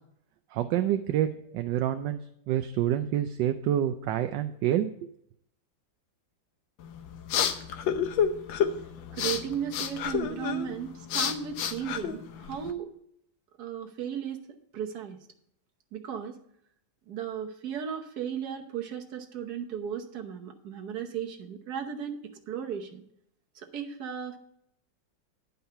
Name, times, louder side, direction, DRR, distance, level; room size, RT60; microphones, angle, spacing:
voice 1, 0.5-2.2 2.5-5.1, right 11 dB, 75° right, 8 dB, 1.2 m, -27 dB
sound 1, 6.8-12.7, left 8 dB, 80° left, 1.5 m, -30 dB
voice 2, 9.1-12.9 13.6-14.4 14.7-15.2 15.9-16.4 17.1-22.2 22.5-23.0 23.5-24.4, right 8 dB, 60° right, 4 dB, 1.5 m, -35 dB
10.5 x 5.5 x 5.6 m, 0.71 s
omnidirectional pair, 2.1 m